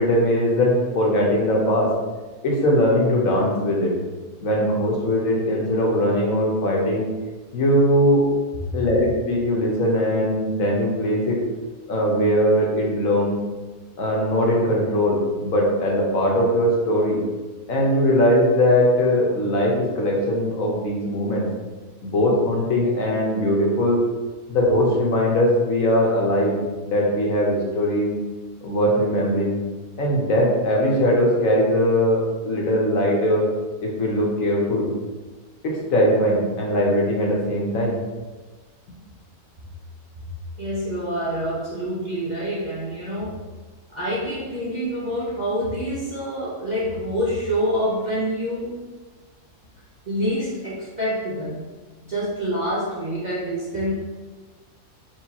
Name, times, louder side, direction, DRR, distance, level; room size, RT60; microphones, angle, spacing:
voice 1, 0.0-1.9 2.4-3.9 4.4-7.1 7.5-8.3 8.7-11.4 11.9-13.3 14.0-17.2 17.7-21.5 22.0-24.0 24.5-26.5 26.8-28.1 28.6-29.6 30.0-33.5 33.8-34.9 35.6-38.0, equal, 65° left, -2 dB, 1.2 m, -20 dB
voice 2, 40.6-43.4 43.9-48.8 50.1-51.6 52.0-53.9, equal, 40° right, -8 dB, 0.7 m, -26 dB
4.6 x 3.3 x 2.8 m, 1.3 s
omnidirectional pair, 1.6 m